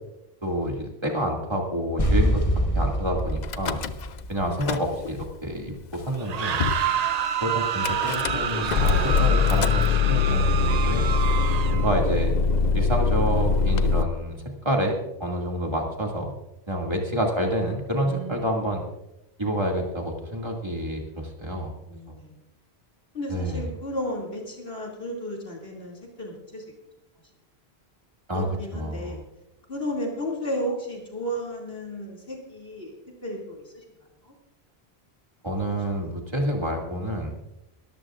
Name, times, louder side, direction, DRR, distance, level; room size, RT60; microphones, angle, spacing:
voice 1, 0.4-2.4 2.7-3.8 4.3-6.6 7.4-11.1 11.7-12.3 12.7-14.4 14.6-14.9 15.2-16.3 16.7-18.8 19.4-21.7 23.3-23.7 28.3-28.5 28.7-29.2 35.4-37.3, right 1 dB, 25° right, 0 dB, 2.3 m, -28 dB
sound 1, 2.0-4.9, equal, 30° left, 1.7 m, -25 dB
Car / Engine starting / Idling, 3.4-4.2 4.5-5.3 5.9-6.0 6.2-6.3 6.6-6.9 7.8-14.0, left 5 dB, 50° left, 0.6 m, -23 dB
sound 2, 6.2-12.0, right 8 dB, 50° right, 0.5 m, -28 dB
voice 2, 16.8-17.2 18.0-18.4 21.9-22.4 23.1-26.6 28.3-29.2 29.7-33.0 33.2-33.8 34.2-34.3, equal, 70° left, -2 dB, 2.8 m, -33 dB
22.0 x 13.5 x 2.5 m, 0.89 s
omnidirectional pair, 1.1 m